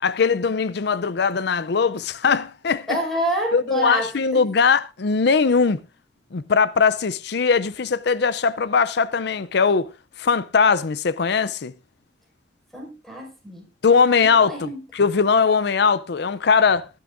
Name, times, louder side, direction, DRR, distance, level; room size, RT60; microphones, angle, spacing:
voice 1, 0.0-3.0 3.5-5.8 6.3-9.9 10.2-11.7 13.8-16.9, left 5 dB, 65° left, 0.5 m, -20 dB
voice 2, 2.9-4.4 12.7-13.6 14.2-14.8, right 1 dB, ahead, 5.4 m, -28 dB
18.5 x 10.5 x 2.6 m
head